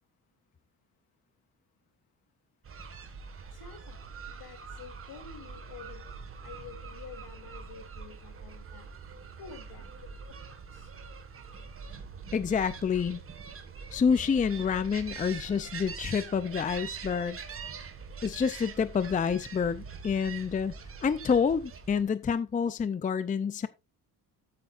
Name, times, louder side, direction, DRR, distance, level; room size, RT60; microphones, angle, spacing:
sound 1, 2.6-22.0, right 5 dB, 35° right, 1.7 m, -44 dB
voice 1, 3.5-8.9 9.4-10.4 10.7-10.9, left 6 dB, 75° left, 2.9 m, -49 dB
voice 2, 12.3-13.2 13.9-17.4 18.2-20.7 21.0-23.7, left 6 dB, 20° left, 0.5 m, -28 dB
13.5 x 8.7 x 2.5 m
cardioid pair, 165°, 38 cm